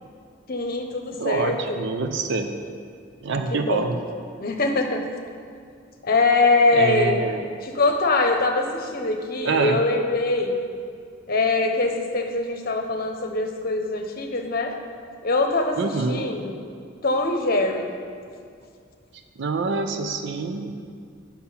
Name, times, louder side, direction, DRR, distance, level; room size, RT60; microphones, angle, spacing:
voice 1, 0.5-1.8 3.3-4.0 4.4-5.0 6.0-7.2 7.6-10.5 11.3-14.7 15.2-16.6 17.0-17.9, left 3 dB, 50° left, 3 dB, 0.8 m, -23 dB
voice 2, 1.2-2.5 3.2-4.0 6.7-7.4 9.4-9.8 15.8-16.2 19.4-20.7, right 4 dB, 65° right, 6 dB, 0.5 m, -26 dB
8.5 x 5.8 x 5.6 m, 2.2 s
head